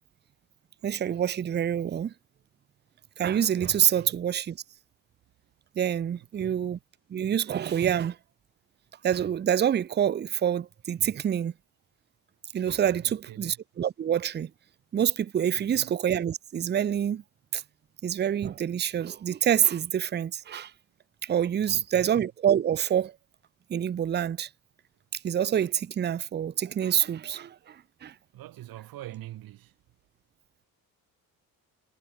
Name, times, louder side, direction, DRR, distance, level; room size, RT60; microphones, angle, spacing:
voice 1, 0.8-2.1 3.2-4.6 5.8-6.8 7.1-8.2 9.0-11.5 12.5-14.5 14.9-17.2 17.5-17.6 18.0-20.7 21.2-23.1 23.7-24.5 25.1-28.1, right 9 dB, 30° right, 0.7 m, -26 dB
voice 2, 6.2-6.8 13.0-13.6 15.6-15.9 21.6-22.1 28.3-29.7, right 15 dB, 70° right, 3.2 m, -44 dB
cardioid pair, 160°, 37 cm